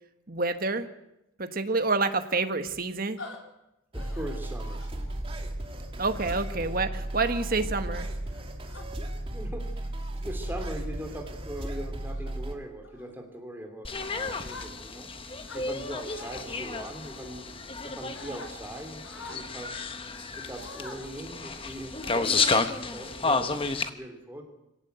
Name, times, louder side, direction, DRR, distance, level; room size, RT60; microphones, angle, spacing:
voice 1, 0.3-0.9 1.4-3.2 6.0-8.1, right 3 dB, 45° right, 9 dB, 1.5 m, -28 dB
sound 1, 3.2-3.4 3.9-4.3 4.8-5.1 6.2-6.6 7.3-7.6 8.3-8.9 9.7-9.9 10.4-10.8 11.2-11.5 12.0-12.3 12.8-13.1 14.4-15.1 15.4-16.4 17.0-17.8 18.1-18.5 19.0-19.4 20.4-21.0 21.4-21.6 22.0-22.7, left 2 dB, 70° left, 3.8 m, -46 dB
voice 2, 3.9-4.9 9.3-22.6 22.9-24.4, right 1 dB, 10° right, 3 dB, 3.0 m, -41 dB
sound 2, 3.9-12.5, right 1 dB, 25° right, 2.5 m, -35 dB
sound 3, 13.8-23.9, left 4 dB, 25° left, 1.1 m, -31 dB
25.5 x 17.0 x 8.1 m, 0.90 s
head